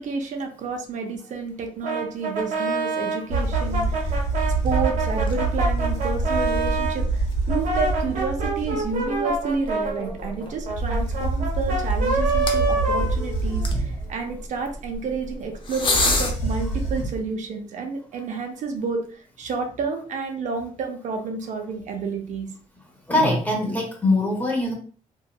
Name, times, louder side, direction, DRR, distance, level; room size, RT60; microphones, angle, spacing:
voice 1, 0.0-4.2 4.6-22.5, right 4 dB, 65° right, 3 dB, 0.5 m, -30 dB
Brass instrument, 1.8-7.0 7.5-13.8, right 3 dB, 80° right, 0.9 m, -27 dB
sound 1, 3.3-8.9 10.7-14.1 15.8-17.3, right 2 dB, 85° left, 1.0 m, -26 dB
sound 2, 4.3-16.3, left 2 dB, 40° left, 0.6 m, -32 dB
voice 2, 23.1-24.7, left 2 dB, 10° left, 0 dB, 0.9 m, -22 dB
2.7 x 2.3 x 2.2 m, 0.42 s
cardioid pair, 95°, 14 cm